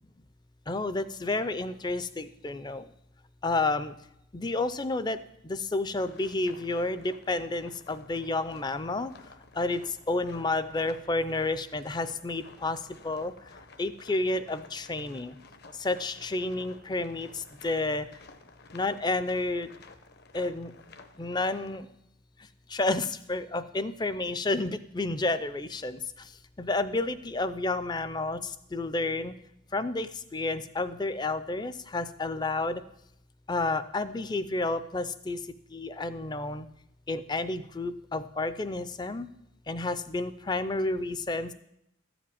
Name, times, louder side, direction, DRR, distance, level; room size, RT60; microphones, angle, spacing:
voice 1, 0.7-2.8 3.4-3.9 4.3-5.2 5.4-9.1 9.6-13.3 13.8-15.3 15.8-18.1 18.7-19.7 20.3-20.7 21.2-21.9 22.7-26.0 26.6-29.3 29.7-32.8 33.5-35.4 35.7-36.7 37.1-39.3 39.7-41.5, left 2 dB, 20° left, 14 dB, 0.4 m, -30 dB
sound 1, 6.0-21.8, left 3 dB, 50° left, 0.8 m, -53 dB
13.0 x 5.1 x 8.6 m, 0.78 s
head